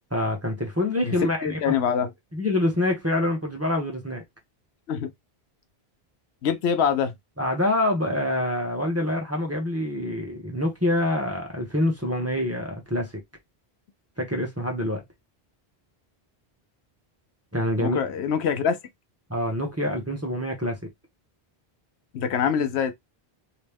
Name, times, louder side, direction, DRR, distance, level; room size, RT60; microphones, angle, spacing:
voice 1, 0.1-1.8 2.3-4.2 7.4-13.1 14.2-15.0 17.5-18.0 19.3-20.9, left 1 dB, 15° right, 1.0 m, -26 dB
voice 2, 1.4-2.1 4.9-5.1 6.4-7.1 17.8-18.8 22.1-22.9, left 7 dB, 85° left, 0.9 m, -24 dB
3.0 x 2.9 x 3.4 m
omnidirectional pair, 1.1 m